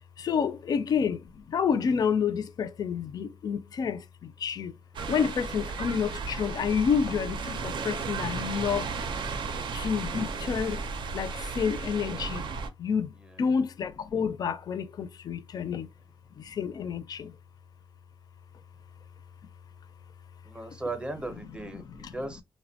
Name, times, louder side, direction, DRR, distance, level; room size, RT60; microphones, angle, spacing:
voice 1, 0.2-4.7 5.1-8.9 9.7-10.8 11.1-12.4 12.8-13.1 13.4-15.9 16.4-17.3 21.9-22.2, left 6 dB, 55° left, 0.4 m, -29 dB
sound 1, 4.9-12.7, right 4 dB, 75° right, 0.5 m, -34 dB
voice 2, 20.4-22.4, right 2 dB, 10° right, 0.6 m, -38 dB
2.8 x 2.1 x 2.7 m
wide cardioid pair, 140°, 8 cm